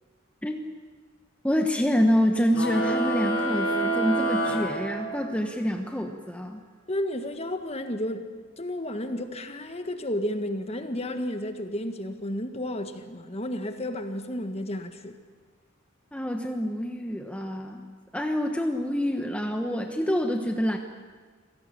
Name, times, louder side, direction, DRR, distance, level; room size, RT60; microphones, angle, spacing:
voice 1, 1.4-6.6 16.1-17.8 18.1-20.8, equal, 5° left, 1.2 m, -27 dB
sound 1, 2.5-5.5, right 1 dB, 90° left, 4.7 m, -27 dB
voice 2, 6.9-8.3 8.6-15.2, left 1 dB, 30° left, 1.6 m, -32 dB
26.5 x 17.5 x 8.9 m
head